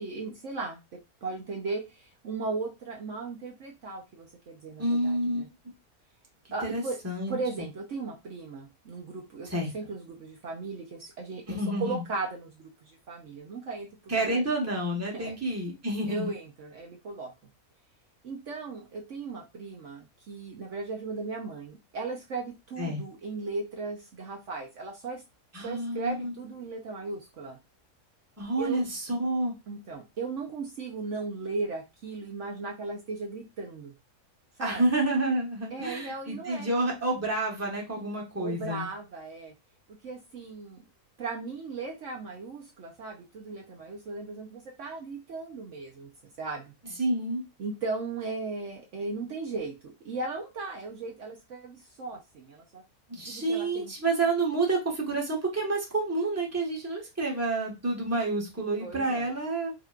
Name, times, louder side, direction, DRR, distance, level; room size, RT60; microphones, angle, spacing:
voice 1, 0.0-5.5 6.5-7.0 7.3-14.8 15.1-15.3 16.1-17.3 18.2-25.2 25.6-27.6 28.6-28.8 29.7-33.9 34.6-34.8 35.7-36.7 38.4-39.5 40.0-40.8 41.2-46.1 46.4-46.7 47.6-52.8 53.3-53.9 58.8-59.2, right 3 dB, 60° right, 0 dB, 1.1 m, -37 dB
voice 2, 4.8-5.5 6.6-7.4 9.4-9.7 11.5-12.0 14.1-16.3 22.8-23.0 25.5-26.3 28.4-29.5 34.6-38.9 47.0-47.4 53.1-59.7, right 2 dB, 10° right, -1 dB, 1.2 m, -29 dB
5.0 x 3.0 x 2.4 m, 0.24 s
omnidirectional pair, 1.5 m